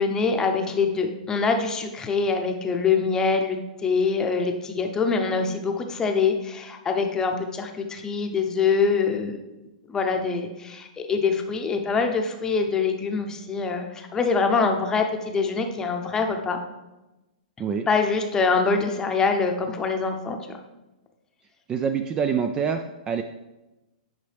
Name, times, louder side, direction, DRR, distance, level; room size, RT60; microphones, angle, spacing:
voice 1, 0.0-9.4 9.9-16.6 17.9-20.4, left 4 dB, 15° left, 4 dB, 0.7 m, -24 dB
voice 2, 21.7-22.8 23.1-23.2, right 7 dB, 15° right, 7 dB, 0.3 m, -25 dB
9.5 x 5.2 x 3.4 m, 1.0 s
hypercardioid pair, 145°, 5 cm